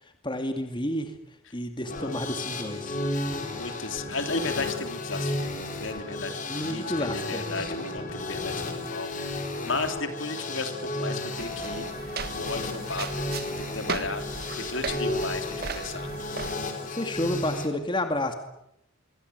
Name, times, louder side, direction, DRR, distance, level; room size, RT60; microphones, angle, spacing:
voice 1, 0.2-1.1 1.5-3.0 6.5-7.7 16.6-18.3, left 1 dB, 25° left, 6 dB, 2.4 m, -30 dB
sound 1, 1.9-17.7, left 2 dB, 40° left, 4.2 m, -33 dB
voice 2, 3.1-14.2 14.6-16.1, left 3 dB, 65° left, 7 dB, 3.4 m, -35 dB
sound 2, 11.4-16.5, right 4 dB, 45° right, 1.6 m, -37 dB
27.0 x 23.5 x 8.1 m, 0.78 s
head